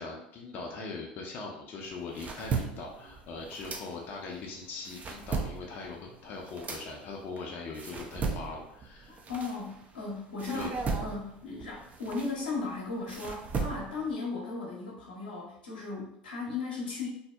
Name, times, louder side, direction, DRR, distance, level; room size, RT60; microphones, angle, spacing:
voice 1, 0.0-9.2 10.5-10.7, left 3 dB, 45° left, -1 dB, 0.5 m, -41 dB
sound 1, 1.8-4.3 4.7-10.0 10.4-14.1, right 4 dB, 30° right, 0.4 m, -37 dB
voice 2, 9.1-10.7 11.0-17.1, left 4 dB, 85° left, -4 dB, 0.7 m, -36 dB
2.6 x 2.0 x 2.3 m, 0.76 s
hypercardioid pair, 80°, 5 cm